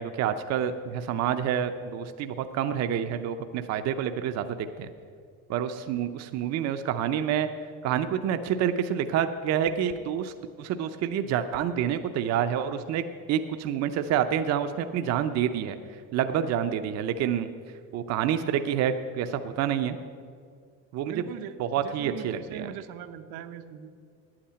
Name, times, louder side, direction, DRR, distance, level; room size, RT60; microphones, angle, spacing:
voice 1, 0.0-4.9 5.5-7.5 7.8-13.0 13.3-15.8 16.1-17.5 17.9-20.0 20.9-21.2 21.6-22.7, right 9 dB, 50° right, 9 dB, 0.6 m, -28 dB
voice 2, 21.1-23.9, right 10 dB, 85° right, 8 dB, 0.8 m, -40 dB
9.3 x 8.7 x 8.6 m, 2.1 s
cardioid pair, 170°, 34 cm